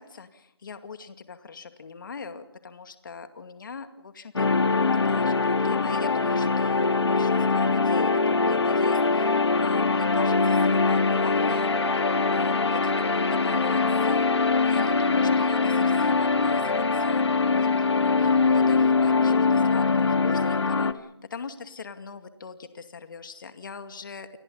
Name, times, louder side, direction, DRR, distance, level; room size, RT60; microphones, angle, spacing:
voice 1, 0.0-4.5 5.0-11.7 12.3-24.4, left 5 dB, 50° left, 8 dB, 2.3 m, -41 dB
sound 1, 4.4-20.9, left 4 dB, 80° left, 1.9 m, -22 dB
29.5 x 22.5 x 5.6 m, 0.72 s
hypercardioid pair, 165°, 14 cm